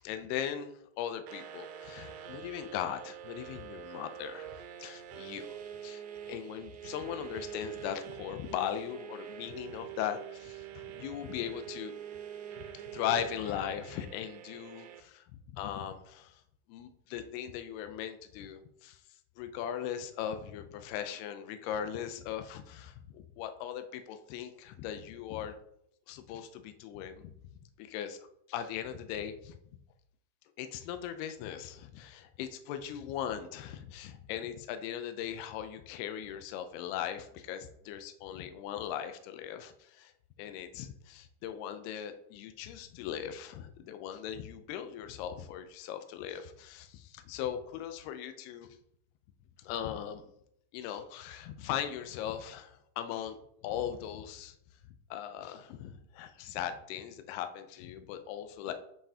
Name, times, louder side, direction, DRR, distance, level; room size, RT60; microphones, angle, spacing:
voice 1, 0.0-4.5 4.8-11.9 12.7-16.4 16.7-19.0 19.4-25.5 26.1-27.3 27.8-28.2 28.5-29.6 30.6-40.1 40.4-48.7 49.6-50.3 50.7-53.4 53.6-54.6 55.1-58.7, left 9 dB, 85° left, 8 dB, 2.6 m, -39 dB
sound 1, 1.3-15.0, right 10 dB, 75° right, 2.4 m, -45 dB
7.4 x 6.9 x 2.8 m, 0.72 s
omnidirectional pair, 4.6 m